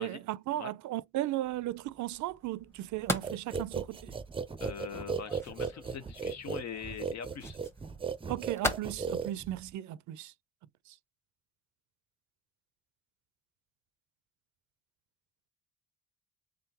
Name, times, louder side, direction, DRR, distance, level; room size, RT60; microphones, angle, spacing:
voice 1, 0.0-4.2 8.3-10.3, right 15 dB, 70° right, 0.5 m, -36 dB
sound 1, 1.4-8.8, equal, 10° left, 1.0 m, -41 dB
sound 2, 3.2-9.7, right 5 dB, 20° right, 0.5 m, -36 dB
voice 2, 4.6-7.6, left 7 dB, 60° left, 0.9 m, -42 dB
3.7 x 3.6 x 2.8 m
cardioid pair, 90°, 30 cm